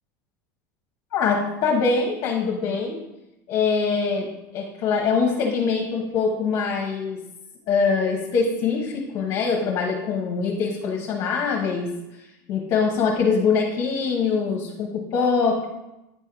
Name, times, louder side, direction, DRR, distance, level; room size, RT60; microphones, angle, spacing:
voice 1, 1.1-3.0 3.5-4.3 4.5-7.2 7.7-11.9 12.5-15.7, left 5 dB, 45° left, 0 dB, 1.1 m, -23 dB
9.2 x 3.6 x 4.6 m, 0.94 s
supercardioid pair, 140°, 9 cm